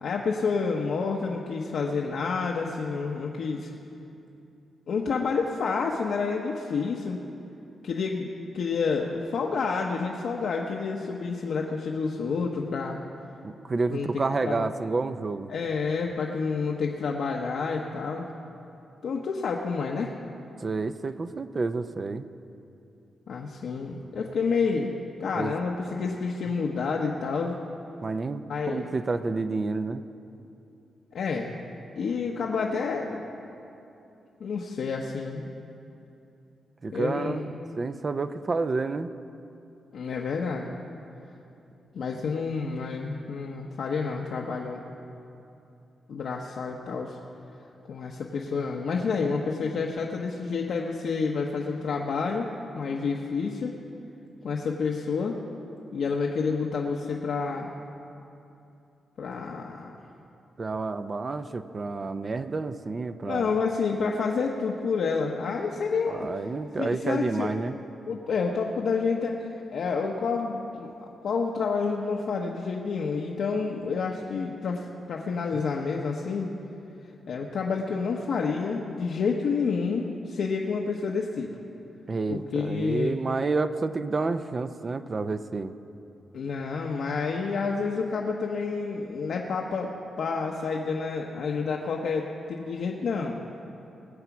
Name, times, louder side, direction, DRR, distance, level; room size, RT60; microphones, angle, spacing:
voice 1, 0.0-3.7 4.9-7.2 7.8-13.0 13.9-14.7 15.5-18.3 19.0-20.1 23.3-24.9 25.2-27.6 28.5-28.9 31.1-31.6 32.0-33.3 34.4-35.5 36.9-37.4 39.9-40.7 41.9-44.8 46.1-47.2 47.9-52.5 52.7-53.7 54.4-55.3 55.9-57.7 59.2-60.0 63.2-66.3 66.8-67.7 68.1-70.9 71.2-76.5 77.3-81.5 82.3-83.1 86.3-89.9 90.2-93.4, left 5 dB, 70° left, -1 dB, 0.9 m, -29 dB
voice 2, 13.4-15.5 20.6-22.3 25.4-25.5 28.0-30.0 36.8-37.5 37.8-39.1 60.6-63.5 66.1-67.8 82.1-85.7, right 3 dB, 35° right, 11 dB, 0.5 m, -29 dB
20.5 x 8.1 x 6.0 m, 2.8 s
cardioid pair, 115°, 0 cm